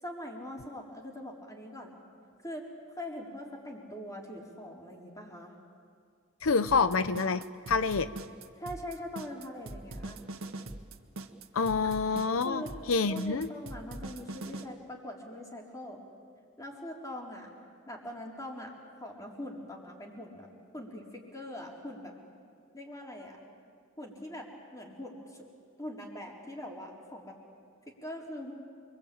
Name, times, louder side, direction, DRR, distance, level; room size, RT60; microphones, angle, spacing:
voice 1, 0.0-2.0 2.4-2.7 3.0-5.5 8.6-10.2 11.8-11.9 12.4-12.7 13.1-16.0 16.6-17.5 17.9-18.7 19.0-20.5 20.7-22.1 22.7-23.4 24.0-25.5 25.8-27.4 27.9-28.5, left 1 dB, 15° left, -2 dB, 4.3 m, -42 dB
voice 2, 6.4-8.1 11.5-12.6 12.9-13.5, left 4 dB, 85° left, 12 dB, 0.7 m, -27 dB
sound 1, 6.7-14.6, right 2 dB, 85° right, 1.7 m, -42 dB
28.5 x 23.5 x 8.8 m, 2.2 s
head